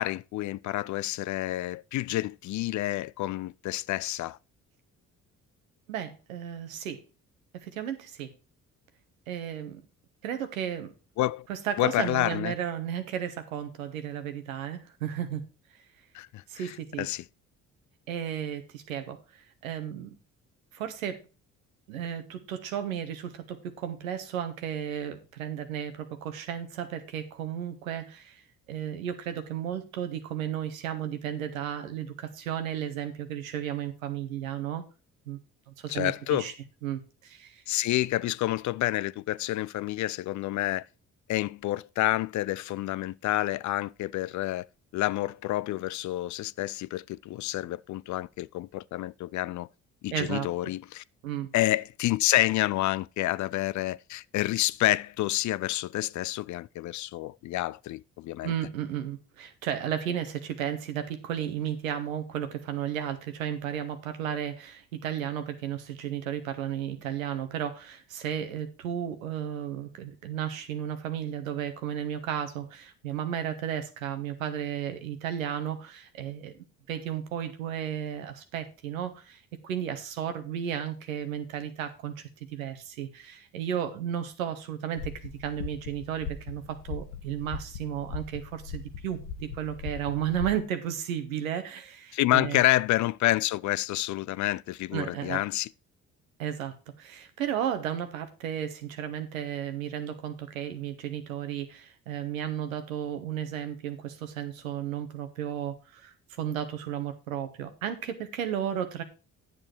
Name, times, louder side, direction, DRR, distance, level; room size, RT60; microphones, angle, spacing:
voice 1, 0.0-4.4 11.2-11.5 11.8-12.5 16.1-17.2 35.9-36.5 37.7-40.8 41.3-44.7 44.9-49.7 50.0-51.0 51.5-58.5 92.1-95.7, left 16 dB, 50° left, 0.4 m, -28 dB
voice 2, 5.9-7.0 7.5-8.3 9.3-9.8 10.2-10.9 11.5-15.4 16.5-17.1 18.1-20.2 20.7-21.2 21.9-28.4 28.7-34.9 35.3-35.4 35.7-36.5 36.8-37.6 50.1-50.5 51.2-51.5 58.4-82.1 82.5-92.6 94.9-95.4 96.4-109.0, right 9 dB, 85° right, 1.2 m, -34 dB
sound 1, 85.0-90.6, left 6 dB, 75° left, 1.1 m, -40 dB
10.0 x 7.0 x 4.5 m
hypercardioid pair, 50°, 40 cm